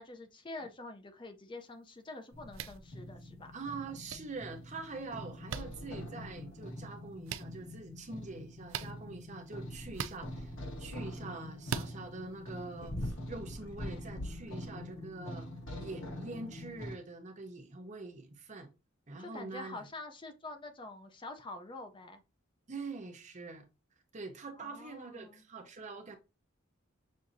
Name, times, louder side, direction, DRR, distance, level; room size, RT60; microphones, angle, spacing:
voice 1, 0.0-3.5 19.2-22.2 24.6-25.4, left 2 dB, 25° left, 0.5 m, -46 dB
sound 1, 2.3-16.9, left 1 dB, 80° left, 1.9 m, -44 dB
sound 2, 2.5-2.8 4.1-4.2 5.5-5.6 7.2-7.4 8.7-8.9 9.9-10.2 11.6-11.9, right 7 dB, 70° right, 0.4 m, -37 dB
voice 2, 3.5-15.5 15.8-18.7 19.1-19.9 22.7-23.6 24.1-26.2, right 3 dB, 35° right, 0.8 m, -44 dB
6.3 x 2.7 x 2.6 m
head